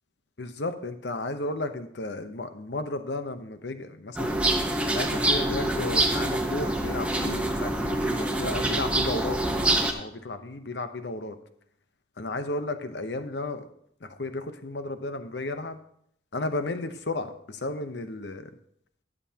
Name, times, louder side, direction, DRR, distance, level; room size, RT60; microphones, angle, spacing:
voice 1, 0.4-4.4 4.9-11.3 12.2-13.7 14.0-15.8 16.3-18.5, left 2 dB, 80° left, 9 dB, 0.9 m, -33 dB
sound 1, 4.2-9.9, right 1 dB, 5° right, 1.0 m, -26 dB
14.0 x 9.5 x 2.9 m, 0.69 s
head